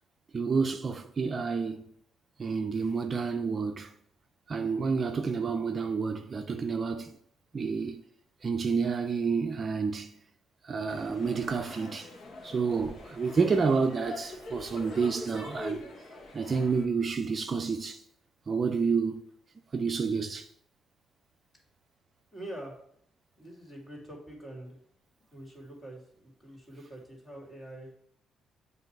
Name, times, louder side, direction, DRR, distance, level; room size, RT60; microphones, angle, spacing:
voice 1, 0.3-1.8 2.4-3.9 4.5-7.1 7.5-8.0 8.4-10.1 10.6-12.1 12.4-15.8 16.3-18.0 18.5-19.2 19.7-20.5, right 5 dB, 40° right, 0.5 m, -29 dB
sound 1, 10.9-16.9, left 2 dB, 60° left, 1.2 m, -44 dB
voice 2, 22.3-22.7 23.4-24.8 25.3-27.9, right 1 dB, 20° left, 2.5 m, -45 dB
7.7 x 2.7 x 4.5 m
cardioid pair, 90°, 0 cm